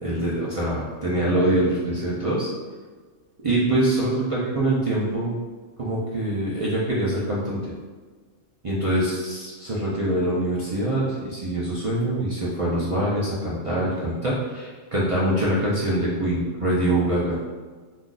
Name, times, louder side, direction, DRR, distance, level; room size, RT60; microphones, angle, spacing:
voice 1, 0.0-2.5 3.4-5.3 5.8-7.6 8.6-17.5, right 1 dB, 50° right, -7 dB, 0.4 m, -24 dB
2.5 x 2.4 x 3.8 m, 1.4 s
omnidirectional pair, 1.3 m